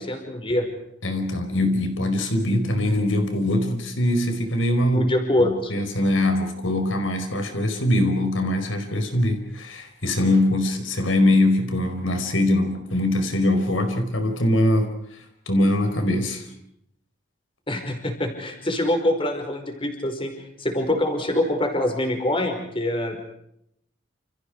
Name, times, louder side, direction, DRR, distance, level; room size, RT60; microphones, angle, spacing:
voice 1, 0.1-0.7 4.9-5.7 17.7-20.3 20.6-23.2, left 1 dB, 25° left, 5 dB, 5.2 m, -24 dB
voice 2, 1.0-5.1 5.4-14.9 15.5-16.5, left 1 dB, 80° left, 6 dB, 4.8 m, -22 dB
29.5 x 29.5 x 5.0 m, 0.74 s
head